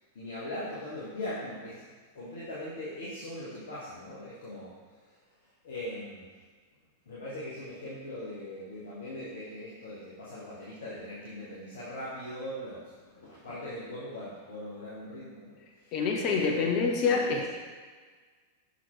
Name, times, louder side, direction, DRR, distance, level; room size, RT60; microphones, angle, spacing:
voice 1, 0.1-1.8 2.1-4.7 5.0-5.1 5.6-6.3 7.0-15.9 16.2-17.4, left 1 dB, 60° left, -9 dB, 1.5 m, -40 dB
voice 2, 15.9-17.4, left 5 dB, 40° left, 0 dB, 1.0 m, -26 dB
6.8 x 6.0 x 3.2 m, 1.5 s
figure-of-eight pair, 90°, 0 cm